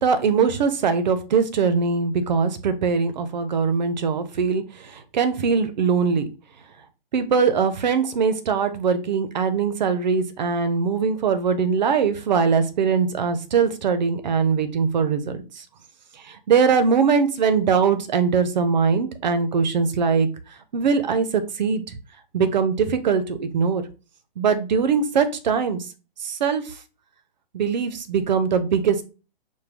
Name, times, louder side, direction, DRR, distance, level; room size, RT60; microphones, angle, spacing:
voice 1, 0.0-4.6 5.1-6.3 7.1-15.4 16.5-20.3 20.7-21.8 22.3-23.8 24.4-25.8 26.2-26.6 27.5-29.0, right 6 dB, 50° right, 10 dB, 0.6 m, -21 dB
4.9 x 2.2 x 3.4 m, 0.33 s
hypercardioid pair, 155°, 29 cm